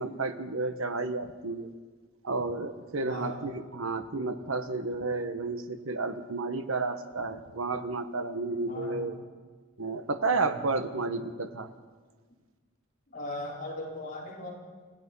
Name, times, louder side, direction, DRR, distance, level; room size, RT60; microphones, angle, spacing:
voice 1, 0.0-1.7 2.2-9.2 9.8-11.7, right 3 dB, 75° right, 9 dB, 1.3 m, -31 dB
voice 2, 3.0-3.4 8.6-9.0 10.3-10.6 13.1-14.5, left 1 dB, 45° left, -4 dB, 5.1 m, -38 dB
29.5 x 16.0 x 5.6 m, 1.4 s
head